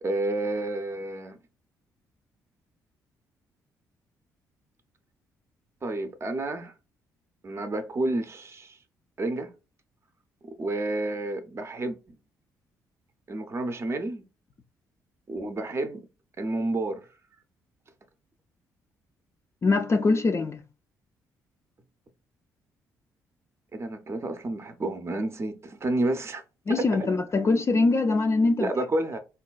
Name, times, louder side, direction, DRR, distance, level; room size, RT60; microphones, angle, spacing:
voice 1, 0.0-1.4 5.8-6.7 7.4-8.8 9.2-9.5 10.6-12.0 13.3-14.2 15.3-16.0 16.4-17.1 23.7-26.4 26.8-27.1 28.6-29.2, right 2 dB, 30° right, 0.6 m, -30 dB
voice 2, 19.6-20.6 26.7-28.7, left 3 dB, 35° left, 0.4 m, -23 dB
3.8 x 2.2 x 2.2 m
hypercardioid pair, 50°, 8 cm